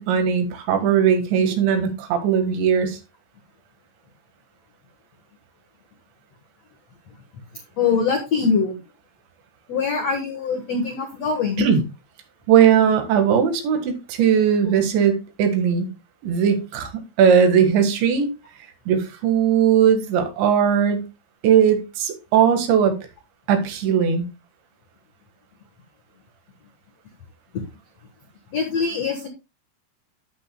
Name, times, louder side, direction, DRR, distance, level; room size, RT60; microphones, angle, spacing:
voice 1, 0.0-3.0 11.6-11.8 12.5-15.9 16.2-18.3 18.9-21.1 21.4-23.0 23.5-24.3, right 8 dB, 85° right, 3.9 m, -19 dB
voice 2, 7.8-8.8 9.7-11.7 27.5-27.6 28.5-29.3, left 5 dB, 75° left, 1.5 m, -23 dB
11.5 x 9.5 x 2.2 m
omnidirectional pair, 5.0 m